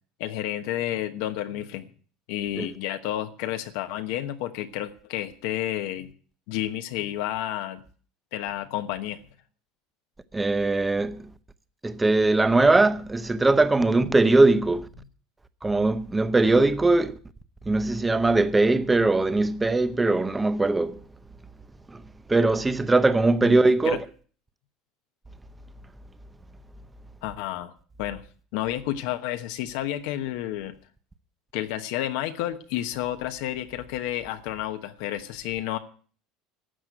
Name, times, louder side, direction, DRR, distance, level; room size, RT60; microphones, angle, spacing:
voice 1, 0.2-1.9 2.3-6.1 6.5-7.8 8.3-9.2 23.4-23.6 23.8-24.0 27.2-27.7 28.0-28.2 28.5-30.7 31.5-35.8, left 13 dB, 70° left, 1.1 m, -30 dB
voice 2, 10.3-11.3 11.8-14.9 15.6-17.1 17.7-21.0 21.9-22.0 22.3-24.0, right 2 dB, 10° right, 0.7 m, -21 dB
13.0 x 8.2 x 9.1 m
cardioid pair, 160°, 0 cm